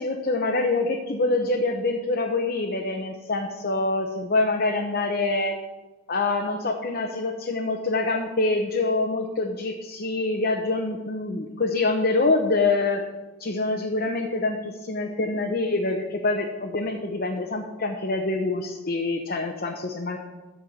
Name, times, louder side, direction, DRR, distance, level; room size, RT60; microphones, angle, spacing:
voice 1, 0.0-5.5 6.1-13.0 13.4-14.6 14.8-20.2, left 3 dB, 50° left, 2 dB, 0.9 m, -25 dB
13.5 x 4.5 x 6.6 m, 1.2 s
head